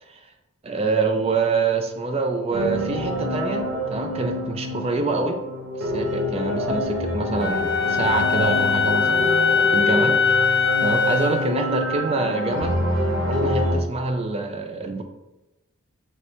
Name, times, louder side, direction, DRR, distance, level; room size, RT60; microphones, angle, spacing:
voice 1, 0.6-5.4 5.8-12.8 13.3-15.0, right 3 dB, 25° right, 5 dB, 0.3 m, -26 dB
sound 1, 2.5-13.7, equal, 60° right, 0.9 m, -26 dB
Wind instrument woodwind instrument, 7.4-11.5, left 5 dB, 40° left, 0.6 m, -21 dB
3.1 x 2.7 x 4.3 m, 1.0 s
head